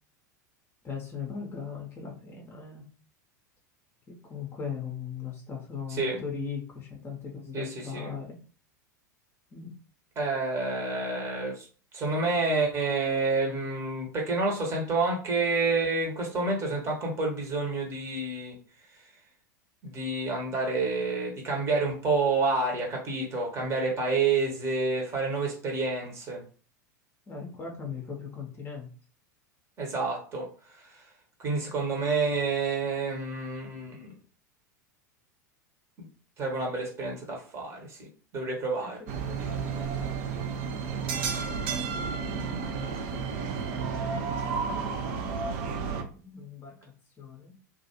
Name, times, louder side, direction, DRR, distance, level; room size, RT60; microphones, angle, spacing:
voice 1, 0.8-2.8 4.1-8.4 9.5-9.7 27.3-28.9 38.8-41.0 41.7-43.6 44.3-45.3 45.5-46.8 47.2-47.5, left 6 dB, 25° left, 0 dB, 0.6 m, -40 dB
voice 2, 7.5-8.1 10.2-11.6 11.9-18.6 19.8-26.4 29.8-30.5 31.4-34.1 36.0-36.1 36.4-38.1 38.3-39.0, right 3 dB, 30° right, 0 dB, 0.9 m, -29 dB
sound 1, 39.1-46.0, right 5 dB, 50° right, 0.4 m, -32 dB
2.3 x 2.3 x 2.8 m, 0.39 s
figure-of-eight pair, 85°, 10 cm